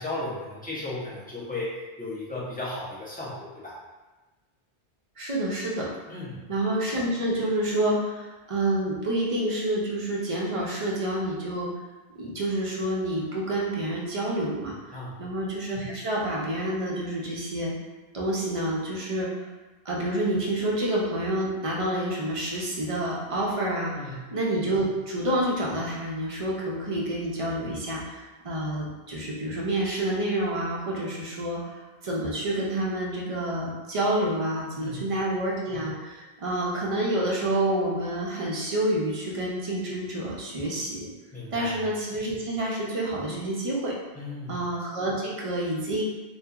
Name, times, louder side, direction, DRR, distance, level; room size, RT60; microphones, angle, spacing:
voice 1, 0.0-3.8 6.1-6.5 14.9-15.2 23.9-24.3 34.7-35.1 41.3-41.8 44.1-44.6, left 2 dB, 10° left, -8 dB, 0.5 m, -35 dB
voice 2, 5.2-5.9 6.5-11.7 12.2-17.7 18.1-19.3 19.8-41.1 41.5-43.9 44.5-46.0, right 1 dB, 45° right, -4 dB, 0.4 m, -28 dB
2.8 x 2.3 x 2.3 m, 1.2 s
omnidirectional pair, 1.1 m